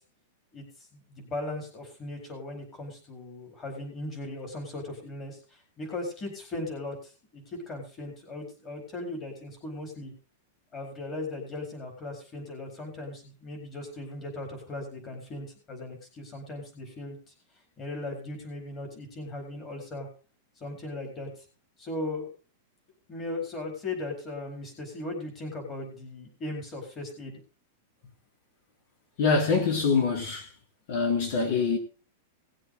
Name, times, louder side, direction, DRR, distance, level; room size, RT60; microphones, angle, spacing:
voice 1, 1.1-10.1 10.7-17.3 17.8-20.1 20.6-21.3 21.8-22.3 23.1-27.4, left 2 dB, 20° left, 4.6 m, -38 dB
voice 2, 29.2-30.5 30.9-31.8, left 4 dB, 45° left, 3.5 m, -24 dB
19.0 x 7.7 x 4.0 m
supercardioid pair, 175°, 0 cm